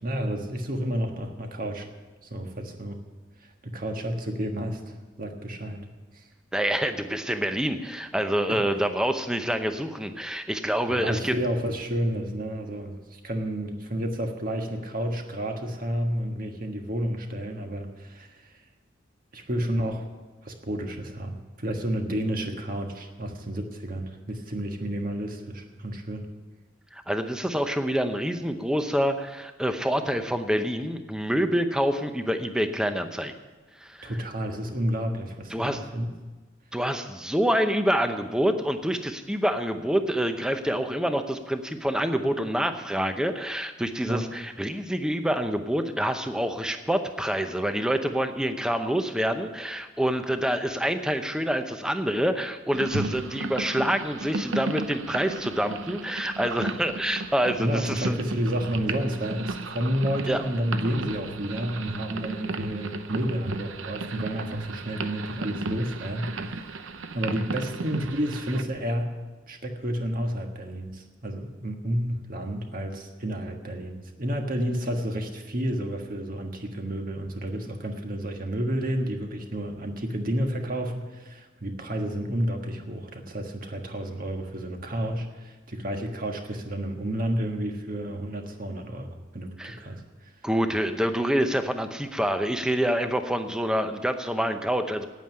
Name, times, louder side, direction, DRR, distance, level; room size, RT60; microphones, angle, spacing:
voice 1, 0.0-1.9 2.2-3.0 3.4-5.9 6.1-6.3 8.5-8.6 10.9-18.6 19.3-20.0 20.4-26.3 34.0-36.0 44.1-44.3 57.6-69.1 69.5-90.3, equal, 45° right, 3 dB, 1.5 m, -31 dB
voice 2, 6.5-11.3 26.9-33.3 33.8-34.1 35.5-35.8 36.7-58.2 60.3-60.4 89.6-89.8 90.4-95.1, equal, 5° right, 7 dB, 0.8 m, -27 dB
sound 1, 52.7-68.6, right 3 dB, 85° right, 0.7 m, -35 dB
9.2 x 9.1 x 9.9 m, 1.2 s
head